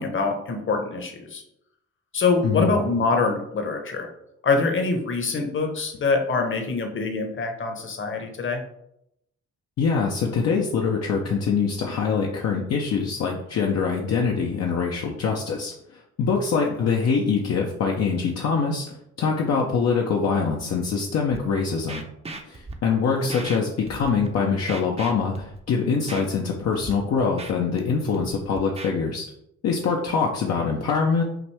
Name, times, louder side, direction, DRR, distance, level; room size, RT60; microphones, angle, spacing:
voice 1, 0.0-1.4 2.1-4.1 4.4-8.6 16.6-16.7 23.2-23.3, left 4 dB, 40° left, 4 dB, 1.0 m, -24 dB
voice 2, 9.8-22.0 22.5-29.3 29.6-31.2, left 5 dB, 55° left, 0 dB, 0.7 m, -24 dB
Scratching (performance technique), 21.3-21.4 21.9-22.7 23.3-23.6 23.9-24.3 24.7-25.6 26.1-26.2 26.7-26.9 27.2-27.8 28.1-28.9, right 2 dB, 20° right, 0.6 m, -37 dB
5.9 x 2.6 x 3.4 m, 0.79 s
cardioid pair, 90°, 30 cm